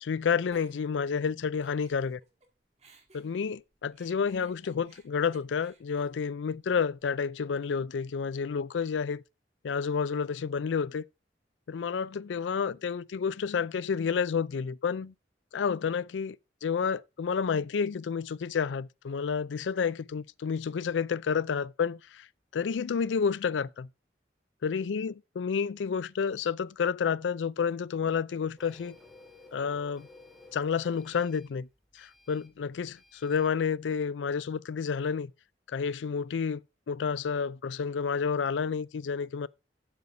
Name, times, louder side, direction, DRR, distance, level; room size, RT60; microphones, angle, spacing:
voice 1, 0.0-2.2 3.1-9.2 9.6-11.0 11.7-15.1 15.5-16.4 16.6-22.3 22.5-23.9 24.6-29.0 29.5-30.1 30.5-31.7 32.0-35.3 35.7-36.6 36.9-39.5, left 6 dB, 90° left, 0.4 m, -30 dB
Giggle, 0.5-2.5 2.8-7.0, right 1 dB, 40° right, 1.7 m, -59 dB
Printer, 28.6-33.6, left 3 dB, ahead, 2.6 m, -55 dB
8.0 x 7.0 x 4.8 m
head